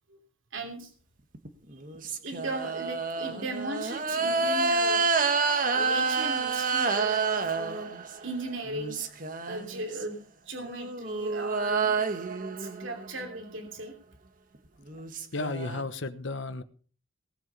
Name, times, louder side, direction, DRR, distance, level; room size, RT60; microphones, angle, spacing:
voice 1, 0.5-0.9 2.2-5.1 5.7-7.9 8.2-9.0 9.4-10.2 10.5-12.1 12.6-13.9, right 2 dB, 70° right, 3 dB, 3.0 m, -37 dB
sound 1, 1.3-8.3 8.7-10.0 10.6-13.3 14.5-14.6 14.9-15.8, right 4 dB, 40° right, 1.4 m, -29 dB
voice 2, 15.3-16.6, left 3 dB, 60° left, 11 dB, 1.1 m, -33 dB
18.5 x 8.0 x 5.6 m, 0.41 s
head